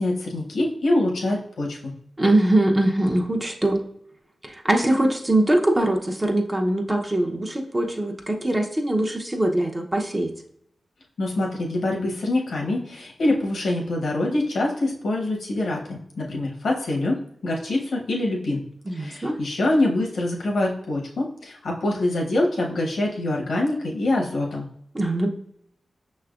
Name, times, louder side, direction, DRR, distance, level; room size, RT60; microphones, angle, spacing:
voice 1, 0.0-1.9 11.2-18.6 18.9-24.6, left 2 dB, 85° left, -1 dB, 0.9 m, -25 dB
voice 2, 2.2-3.8 4.4-10.3 18.9-19.4 24.9-25.3, right 1 dB, 25° right, 2 dB, 0.8 m, -22 dB
5.8 x 3.2 x 2.4 m, 0.69 s
cardioid pair, 55°, 0 cm